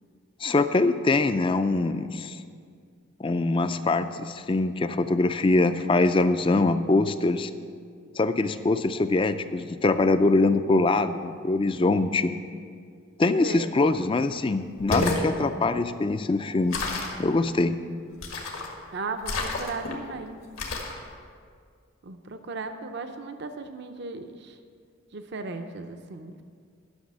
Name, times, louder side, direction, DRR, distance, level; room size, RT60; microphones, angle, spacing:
voice 1, 0.4-2.4 3.2-7.5 8.2-12.3 13.2-16.8 17.2-17.7, left 2 dB, 25° left, 11 dB, 0.4 m, -23 dB
sound 1, 14.7-15.3 16.7-17.2 18.2-18.7 19.2-19.9 20.6-21.0, left 3 dB, 80° left, 1.8 m, -29 dB
voice 2, 18.9-20.4 22.0-24.6 25.1-26.4, right 3 dB, 55° right, 7 dB, 0.6 m, -36 dB
11.5 x 6.2 x 7.3 m, 2.1 s
head